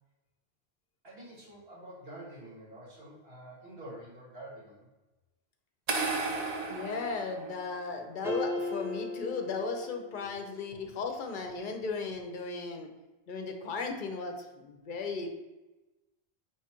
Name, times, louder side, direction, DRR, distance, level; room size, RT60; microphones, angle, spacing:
voice 1, 1.0-4.9, right 1 dB, 75° right, -6 dB, 1.8 m, -47 dB
sound 1, 5.9-8.0, right 3 dB, 45° right, 0.6 m, -34 dB
voice 2, 6.7-12.9 13.3-15.3, left 4 dB, 55° left, 4 dB, 0.7 m, -36 dB
sound 2, 8.2-10.5, left 1 dB, 5° right, 0.4 m, -36 dB
4.7 x 3.2 x 2.9 m, 1.1 s
omnidirectional pair, 1.1 m